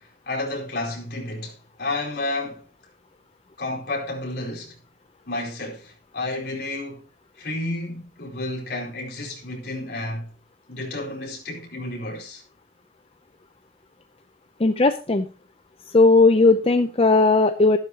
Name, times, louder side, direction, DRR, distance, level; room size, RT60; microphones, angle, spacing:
voice 1, 0.3-2.6 3.6-4.7 5.3-7.0 7.4-10.3 10.7-12.4, left 2 dB, 65° left, 4.6 m, -31 dB
voice 2, 14.6-15.3 15.9-17.8, left 3 dB, 35° left, 0.6 m, -17 dB
14.0 x 11.5 x 3.0 m
head